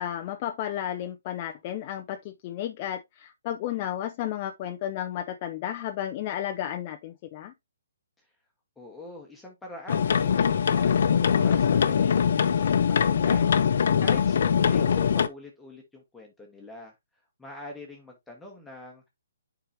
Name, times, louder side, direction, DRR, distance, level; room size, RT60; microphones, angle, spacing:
voice 1, 0.0-7.5, left 11 dB, 30° left, 0.5 m, -33 dB
voice 2, 8.8-16.9 17.4-19.1, left 2 dB, 5° left, 1.3 m, -44 dB
sound 1, 9.9-15.3, left 7 dB, 60° left, 0.9 m, -22 dB
7.9 x 4.9 x 2.8 m
hypercardioid pair, 155°, 0 cm